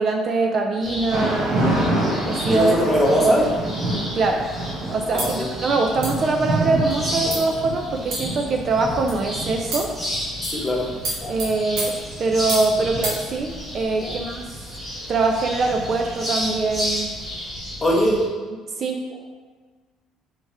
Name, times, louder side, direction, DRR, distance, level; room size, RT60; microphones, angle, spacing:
voice 1, 0.0-1.6 2.2-3.8 4.1-4.5 4.9-9.9 11.3-14.5 15.1-17.1 18.4-19.0, right 3 dB, 35° right, 2 dB, 0.3 m, -23 dB
sound 1, 0.8-18.3, equal, 15° right, 1.3 m, -33 dB
Thunder / Rain, 1.1-17.1, right 1 dB, 65° right, 1.3 m, -29 dB
voice 2, 2.5-3.4 5.1-5.5 7.3-7.4 10.4-10.9 11.2-11.3 14.0-14.1 17.8-18.2, equal, 15° left, -3 dB, 0.8 m, -21 dB
sound 2, 5.2-5.4 6.0-6.3 6.9-7.0 7.3-7.5 8.1-8.5 9.1-9.2 9.7-10.0 10.4-10.6 11.0-12.7 13.0-13.2, right 2 dB, 90° right, 1.2 m, -30 dB
3.5 x 3.4 x 4.2 m, 1.4 s
cardioid pair, 155°, 0 cm